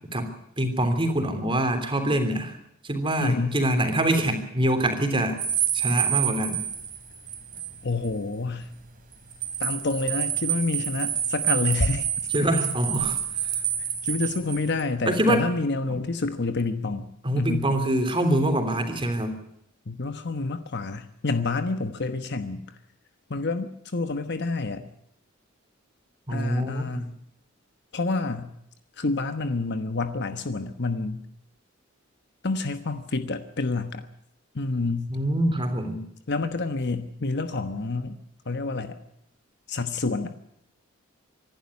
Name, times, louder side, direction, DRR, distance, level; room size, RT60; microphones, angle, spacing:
voice 1, 0.6-2.6 2.8-5.4 5.7-6.6 12.3-13.6 15.1-15.4 17.2-19.4 26.3-27.1 35.1-36.0, right 1 dB, 25° right, 7 dB, 3.2 m, -25 dB
voice 2, 3.2-3.6 7.8-8.8 9.6-12.5 14.0-17.7 19.9-22.8 23.3-24.9 26.3-27.1 27.9-28.5 29.0-31.3 32.4-34.1 34.5-35.1 36.3-38.1 38.4-39.0 39.7-40.3, left 3 dB, 55° left, 9 dB, 1.1 m, -28 dB
sound 1, 5.4-7.7 8.0-8.1 9.1-14.8, right 9 dB, 40° right, 2.8 m, -28 dB
25.5 x 11.5 x 9.6 m, 0.76 s
head